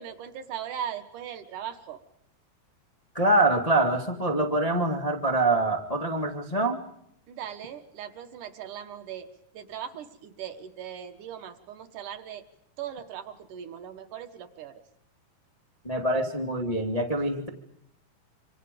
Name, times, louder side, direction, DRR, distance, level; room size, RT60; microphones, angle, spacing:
voice 1, 0.0-2.0 7.3-12.5 12.8-14.8 17.2-17.3, right 9 dB, 60° right, 8 dB, 2.6 m, -39 dB
voice 2, 3.1-6.8 15.8-17.5, right 2 dB, 75° left, 3 dB, 0.3 m, -25 dB
27.5 x 25.0 x 5.2 m, 0.73 s
omnidirectional pair, 4.5 m